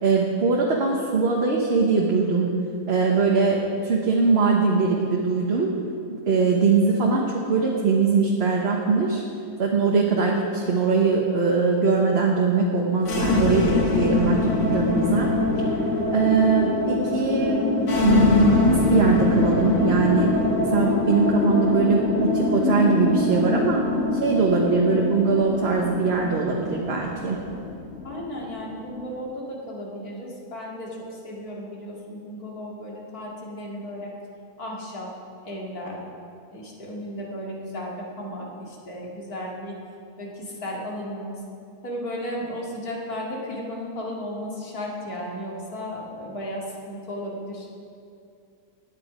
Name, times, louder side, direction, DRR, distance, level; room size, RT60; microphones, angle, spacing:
voice 1, 0.0-2.5 2.9-5.7 6.1-9.2 9.6-15.3 16.1-20.3 20.7-23.8 24.1-27.4, right 4 dB, 45° right, -1 dB, 1.3 m, -21 dB
sound 1, 13.0-29.1, left 3 dB, 55° left, 1.6 m, -24 dB
voice 2, 28.0-34.1 34.6-35.1 35.4-36.0 36.5-39.8 40.2-41.4 41.8-47.7, equal, 85° left, -3 dB, 2.7 m, -34 dB
17.0 x 9.8 x 5.0 m, 2.5 s
omnidirectional pair, 1.6 m